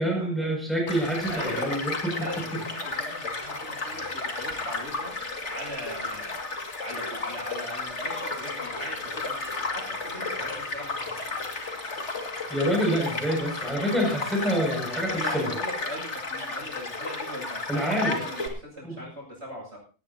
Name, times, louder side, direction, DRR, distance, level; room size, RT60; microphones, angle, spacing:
voice 1, 0.0-2.1 12.5-15.5 17.7-18.2 18.8-19.0, equal, ahead, -2 dB, 6.7 m, -27 dB
Child speech kid speaking / Stream / Car passing by, 0.9-18.5, left 3 dB, 55° left, 2.8 m, -33 dB
voice 2, 1.2-1.7 2.0-5.1 5.4-11.5 15.0-19.8, equal, 55° right, -2 dB, 8.3 m, -40 dB
18.5 x 17.5 x 2.9 m, 0.37 s
omnidirectional pair, 1.4 m